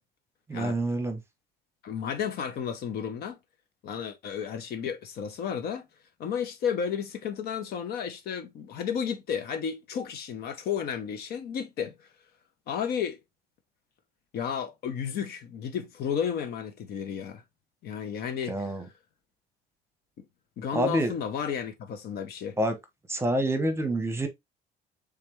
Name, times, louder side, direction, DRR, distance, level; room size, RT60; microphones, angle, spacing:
voice 1, 0.5-1.2 18.5-18.9 20.7-21.1 22.6-22.8 23.1-24.3, right 1 dB, 15° right, 0.9 m, -27 dB
voice 2, 1.8-3.4 3.8-5.9 6.2-11.9 12.7-13.2 14.3-17.4 17.8-18.7 20.6-22.6, left 7 dB, 65° left, 0.8 m, -32 dB
3.6 x 3.3 x 3.0 m
cardioid pair, 110°, 17 cm